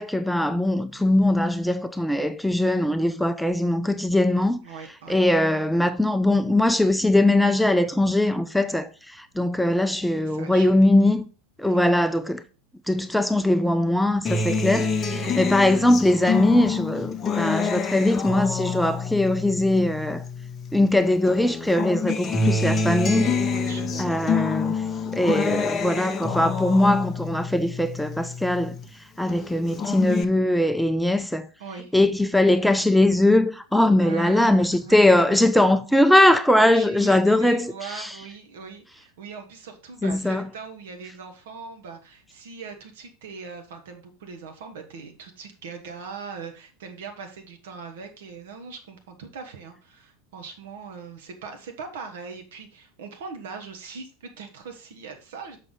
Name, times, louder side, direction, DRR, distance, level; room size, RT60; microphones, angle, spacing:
voice 1, 0.0-4.6 5.1-11.3 11.6-12.4 12.9-20.2 20.7-23.3 24.0-24.8 25.1-28.8 29.2-31.5 31.9-38.1 40.0-40.5, left 1 dB, ahead, 0.5 m, -21 dB
voice 2, 4.6-5.2 10.2-10.7 11.6-11.9 15.1-15.4 23.5-24.3 31.6-31.9 34.0-35.4 36.6-55.6, right 5 dB, 65° right, 1.5 m, -40 dB
Acoustic guitar, 14.2-20.9 21.3-28.9 29.3-30.2, left 4 dB, 30° left, 0.8 m, -27 dB
6.5 x 5.8 x 3.9 m
figure-of-eight pair, 85°, 0 cm